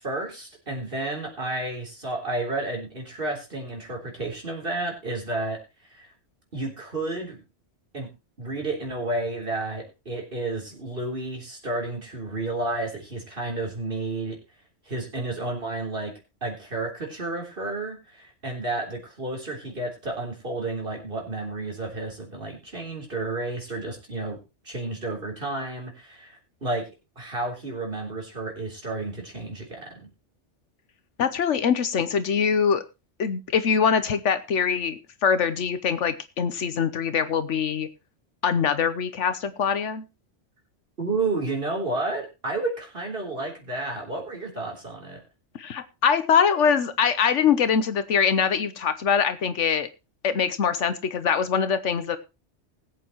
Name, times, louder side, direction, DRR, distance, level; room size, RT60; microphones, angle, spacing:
voice 1, 0.0-6.1 6.5-7.4 7.9-8.1 8.4-14.4 14.8-16.1 16.4-24.4 24.6-26.8 27.2-30.1 41.0-45.2, right 2 dB, 50° right, 1 dB, 4.0 m, -31 dB
voice 2, 31.2-32.8 33.2-37.9 38.4-40.0 45.6-49.9 50.2-52.2, left 7 dB, 80° left, 11 dB, 1.2 m, -23 dB
20.0 x 8.2 x 3.0 m, 0.27 s
omnidirectional pair, 1.2 m